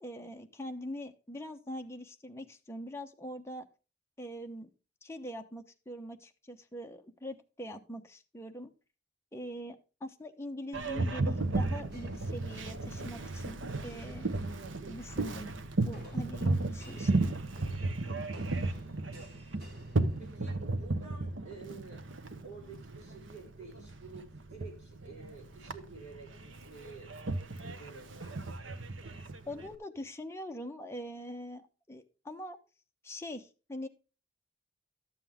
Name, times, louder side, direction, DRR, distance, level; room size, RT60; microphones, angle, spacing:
voice 1, 0.0-3.7 4.2-4.7 5.0-8.7 9.3-14.4 14.9-15.5 15.8-17.3 29.5-32.6 33.0-33.9, equal, 15° left, 4 dB, 1.0 m, -43 dB
Boat Water vehicle, 10.7-29.7, right 2 dB, 85° right, 1.0 m, -35 dB
sound 1, 11.9-13.0 13.7-14.2 15.9-20.8, equal, 55° right, 4.6 m, -55 dB
voice 2, 20.2-22.0 22.4-27.1 27.6-28.4, right 4 dB, 40° right, -3 dB, 7.1 m, -50 dB
12.5 x 7.6 x 3.6 m, 0.33 s
head